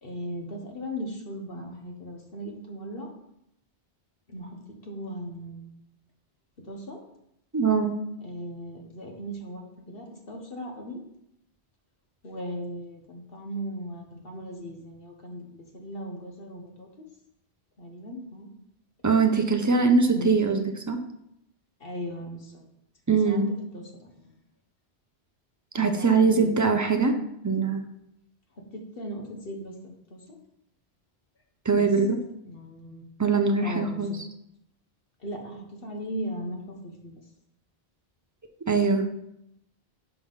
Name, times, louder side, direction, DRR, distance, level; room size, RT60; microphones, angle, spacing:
voice 1, 0.0-3.1 4.3-5.7 6.6-7.0 8.2-9.6 9.9-11.0 12.2-16.9 17.8-18.5 20.0-20.4 21.8-22.6 23.2-24.3 25.7-26.5 28.7-30.4 31.7-31.9 32.5-33.0 33.6-34.2 35.2-37.2, equal, 60° left, 1 dB, 1.5 m, -38 dB
voice 2, 7.5-7.9 19.0-21.0 23.1-23.5 25.7-27.2 27.4-27.8 31.6-32.2 33.2-34.1 38.7-39.1, right 4 dB, 20° right, 5 dB, 0.6 m, -22 dB
5.7 x 4.9 x 5.5 m, 0.78 s
omnidirectional pair, 1.1 m